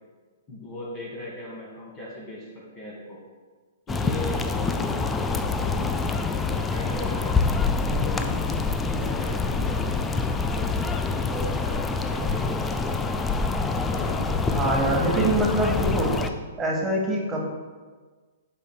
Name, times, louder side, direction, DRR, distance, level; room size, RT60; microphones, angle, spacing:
voice 1, 0.5-3.2 3.9-7.4 7.8-13.3 13.9-15.7, left 1 dB, 30° left, -5 dB, 1.7 m, -37 dB
sound 1, 3.9-16.3, left 4 dB, 10° left, 0.3 m, -26 dB
voice 2, 14.5-16.1 16.6-17.5, right 1 dB, 15° right, -2 dB, 1.4 m, -24 dB
8.2 x 5.4 x 2.2 m, 1.4 s
figure-of-eight pair, 115°, 0 cm